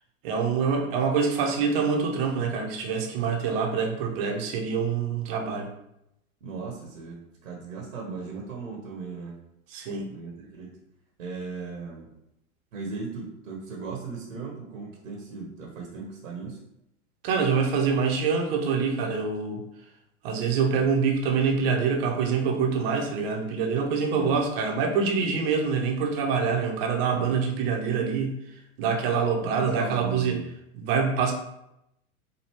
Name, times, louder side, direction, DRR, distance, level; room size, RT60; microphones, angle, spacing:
voice 1, 0.2-5.7 9.7-10.1 17.2-19.6 20.2-30.4 30.7-31.3, right 5 dB, 45° right, 1 dB, 0.9 m, -25 dB
voice 2, 6.4-9.4 10.1-10.8 11.2-12.1 12.7-16.6 24.1-24.4 27.1-27.4 28.8-28.9 29.4-30.4, right 4 dB, 65° right, -1 dB, 1.0 m, -37 dB
4.3 x 2.8 x 3.0 m, 0.83 s
hypercardioid pair, 105°, 43 cm